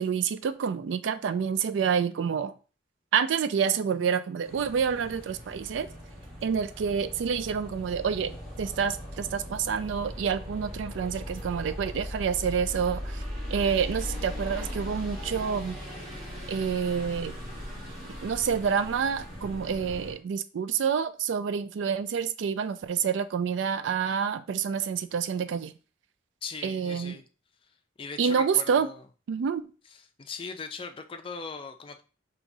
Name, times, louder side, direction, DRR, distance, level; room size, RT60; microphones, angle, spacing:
voice 1, 0.0-2.5 3.1-5.9 6.4-13.2 13.5-15.8 16.5-17.4 18.0-25.7 26.6-27.2 28.2-28.9 29.3-29.6, right 7 dB, 70° right, 12 dB, 0.3 m, -28 dB
sound 1, 4.4-20.2, equal, 55° right, 2.2 m, -39 dB
voice 2, 26.4-27.2 28.0-29.0 30.2-32.0, left 4 dB, 30° left, 6 dB, 0.4 m, -39 dB
4.6 x 2.9 x 2.7 m, 0.35 s
head